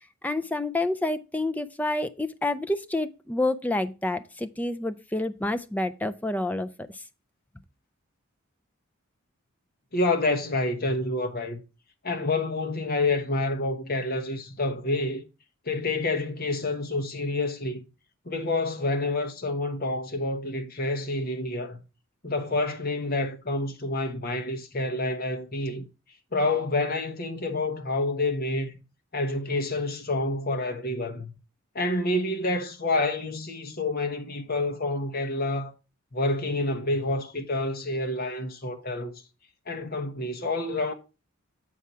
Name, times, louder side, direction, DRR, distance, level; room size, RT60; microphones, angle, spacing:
voice 1, 0.2-6.7, left 2 dB, 5° left, 0.4 m, -28 dB
voice 2, 9.9-11.6 12.0-15.3 15.7-17.8 18.2-21.8 22.2-25.9 26.3-28.7 29.1-31.3 31.7-35.7 36.1-39.2 39.7-40.9, left 2 dB, 45° left, 1.2 m, -28 dB
7.3 x 4.7 x 5.5 m
head